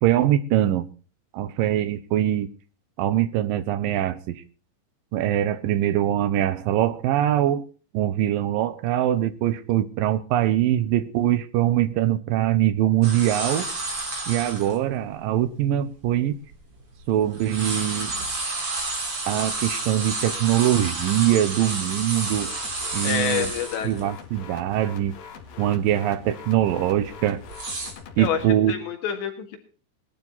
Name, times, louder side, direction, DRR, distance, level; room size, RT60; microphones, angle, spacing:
voice 1, 0.0-0.9 1.3-2.5 3.0-4.4 5.1-7.6 7.9-13.7 14.3-16.4 17.1-18.1 19.3-22.5 22.9-23.5 23.8-25.2 25.6-27.4 28.2-28.8, right 12 dB, 90° right, 2.0 m, -23 dB
sound 1, 13.0-14.8 15.3-15.4 16.0-17.0 17.3-24.0 24.4-24.5 24.9-25.3 25.7-25.9 26.6-27.9, right 3 dB, 30° right, 4.5 m, -30 dB
sound 2, 22.3-28.4, left 6 dB, 55° left, 3.4 m, -43 dB
voice 2, 23.0-23.9 28.2-28.4 28.7-29.6, left 8 dB, 75° left, 3.9 m, -27 dB
20.0 x 12.0 x 4.1 m
omnidirectional pair, 5.2 m